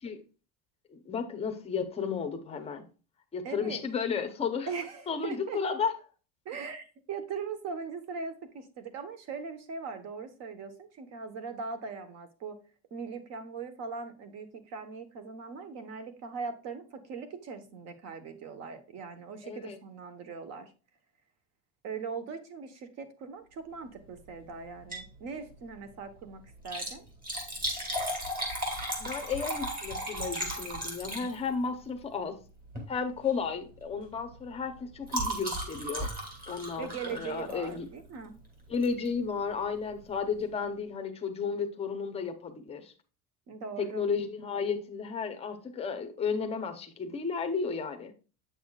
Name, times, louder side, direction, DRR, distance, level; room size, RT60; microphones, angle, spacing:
voice 1, 0.9-2.8 3.3-4.7 5.1-5.9 19.4-19.8 29.0-32.4 32.9-36.1 36.5-37.9 38.7-42.9 43.8-48.1, left 5 dB, 15° left, 0.7 m, -33 dB
voice 2, 3.4-3.8 4.7-5.6 6.4-12.6 12.9-20.7 21.8-27.0 36.8-38.3 43.5-44.0, right 5 dB, 40° right, 1.2 m, -40 dB
Liquid, 24.7-25.2 25.5-25.6 26.5-31.7 32.6-32.9 33.3-33.5 33.8-37.9 38.8-39.1 39.6-39.7 39.9-40.0, right 1 dB, 20° right, 2.0 m, -35 dB
8.1 x 6.2 x 2.3 m
cardioid pair, 180°, 39 cm